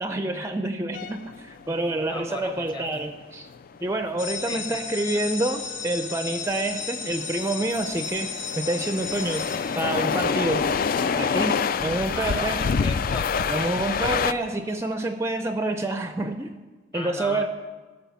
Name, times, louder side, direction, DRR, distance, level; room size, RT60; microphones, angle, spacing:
voice 1, 0.0-3.5 3.8-9.4 9.8-10.7 11.2-12.7 13.5-16.5 16.9-17.5, right 2 dB, 15° right, 7 dB, 0.5 m, -28 dB
sound 1, 0.9-14.3, left 6 dB, 50° left, 0.3 m, -27 dB
voice 2, 2.1-2.9 4.5-4.8 12.1-13.3 16.9-17.5, left 2 dB, 25° left, 7 dB, 1.0 m, -36 dB
sound 2, 4.2-10.3, left 6 dB, 85° left, 2.2 m, -35 dB
16.5 x 6.6 x 7.0 m, 1.3 s
head